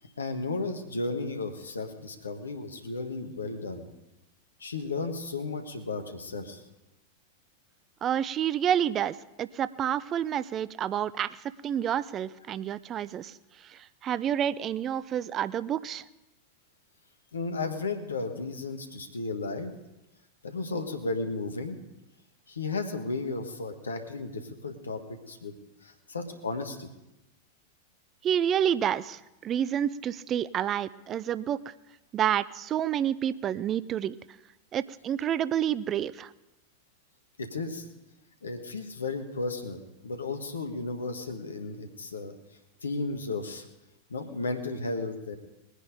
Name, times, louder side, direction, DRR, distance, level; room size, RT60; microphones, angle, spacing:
voice 1, 0.0-3.8 4.6-6.6 17.3-19.7 20.4-21.8 22.5-25.5 25.8-26.9 37.4-37.8 38.4-42.3 42.8-43.6 44.1-45.4, left 3 dB, 75° left, 7 dB, 1.5 m, -34 dB
voice 2, 8.0-11.4 11.6-13.3 13.6-16.0 28.2-31.6 32.1-34.2 34.7-36.3, right 9 dB, 30° right, 17 dB, 0.4 m, -29 dB
20.0 x 10.0 x 5.1 m, 0.95 s
figure-of-eight pair, 90°, 0 cm